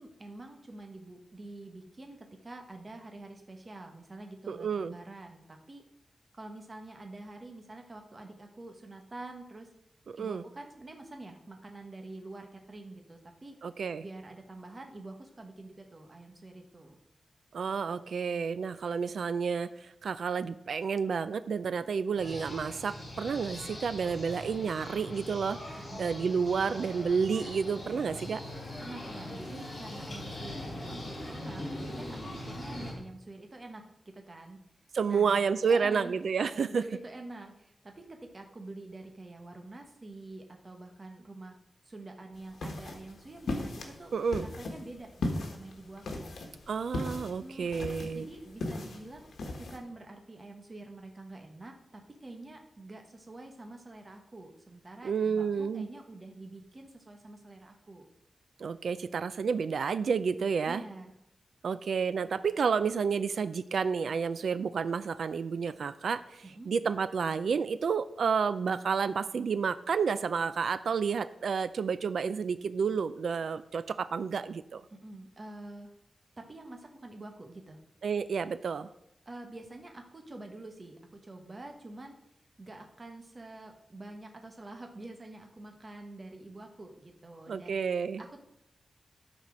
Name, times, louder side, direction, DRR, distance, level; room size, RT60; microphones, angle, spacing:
voice 1, 0.0-5.8 6.3-9.7 10.2-13.5 14.0-17.0 25.8-26.1 28.8-34.6 35.0-36.1 36.5-41.6 41.8-44.1 44.4-46.3 47.4-47.7 48.1-58.0 60.6-61.1 66.4-66.7 74.9-75.9 76.4-77.8 79.2-82.2 82.6-87.8 88.2-88.4, right 2 dB, 25° right, 3 dB, 1.1 m, -47 dB
voice 2, 4.5-4.9 10.1-10.4 13.6-14.0 17.5-25.6 26.0-28.4 34.9-36.8 44.1-44.5 46.7-48.2 55.0-55.9 58.6-60.8 61.6-74.8 78.0-78.9 87.5-88.2, right 6 dB, 75° right, 13 dB, 0.4 m, -30 dB
sound 1, 22.2-32.9, left 1 dB, 40° left, 4.1 m, -41 dB
sound 2, 42.4-49.8, left 2 dB, 85° left, 1.5 m, -38 dB
11.5 x 4.3 x 6.1 m, 0.79 s
wide cardioid pair, 170°, 0 cm